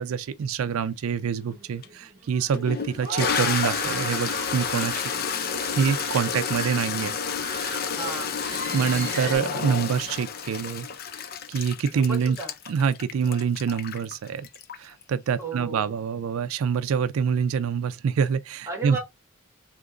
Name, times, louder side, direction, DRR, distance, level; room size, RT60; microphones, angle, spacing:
voice 1, 0.0-5.1 5.7-7.2 8.7-10.9 11.5-12.4 12.7-14.5 14.8-19.0, right 6 dB, 90° right, 0.4 m, -26 dB
sound 1, 1.4-9.4, right 4 dB, 40° right, 1.0 m, -38 dB
Toilet flush, 1.8-1.9 2.5-15.0, left 7 dB, 45° left, 0.5 m, -30 dB
voice 2, 7.9-8.4 11.9-12.5 15.4-15.9 18.7-19.0, right 3 dB, 15° right, 1.7 m, -34 dB
3.7 x 2.9 x 3.7 m
head